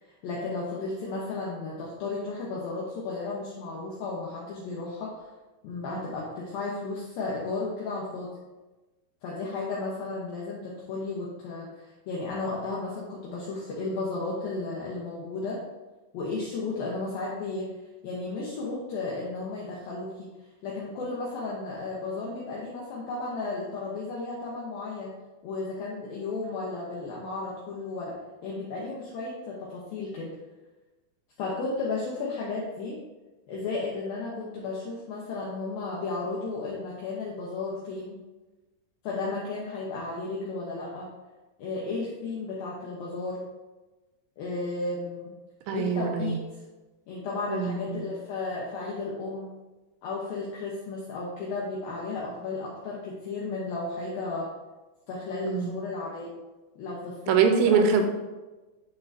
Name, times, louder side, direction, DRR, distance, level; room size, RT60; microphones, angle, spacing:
voice 1, 0.0-5.3 5.6-8.3 9.2-15.6 16.1-17.7 18.0-20.3 20.6-25.1 25.4-28.2 28.4-30.3 31.4-33.0 33.5-38.1 39.0-41.1 41.6-43.4 44.4-45.3 45.7-46.4 47.1-49.5 50.0-54.5 55.1-56.3 56.8-57.8, left 3 dB, 80° left, -5 dB, 2.1 m, -34 dB
voice 2, 45.7-46.4 47.5-48.0 55.4-55.8 57.3-58.0, right 6 dB, 85° right, 5 dB, 3.0 m, -23 dB
11.0 x 3.8 x 2.7 m, 1.1 s
omnidirectional pair, 5.4 m